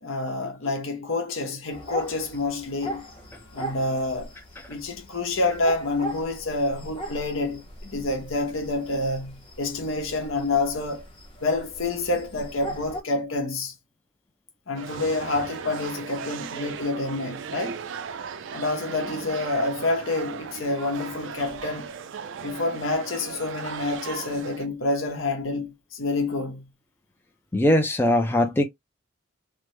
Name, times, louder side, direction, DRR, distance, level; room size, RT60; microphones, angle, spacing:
voice 1, 0.0-3.0 3.5-4.3 4.7-11.0 11.4-13.7 14.7-17.8 18.5-21.9 22.4-26.7, left 2 dB, 70° left, 0.9 m, -28 dB
sound 1, 1.7-13.0, right 1 dB, 25° left, 0.9 m, -39 dB
sound 2, 14.8-24.7, right 6 dB, 60° right, 0.4 m, -37 dB
voice 2, 27.5-28.6, left 1 dB, 10° left, 0.4 m, -20 dB
3.3 x 2.0 x 3.1 m
head